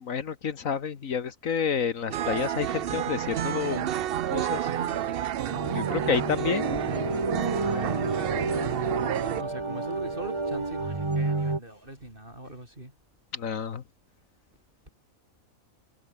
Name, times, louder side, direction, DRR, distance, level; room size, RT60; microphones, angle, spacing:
voice 1, 0.0-3.9 4.3-4.7 5.6-6.8 13.3-13.8, left 7 dB, 75° left, 1.7 m, -29 dB
sound 1, 2.1-9.4, right 11 dB, 60° right, 0.6 m, -30 dB
voice 2, 4.6-5.0 5.7-6.0 6.4-6.5 7.5-8.8 9.3-12.9, right 1 dB, 40° right, 6.3 m, -41 dB
sound 2, 5.5-11.6, right 3 dB, 20° right, 1.5 m, -30 dB
omnidirectional pair, 1.4 m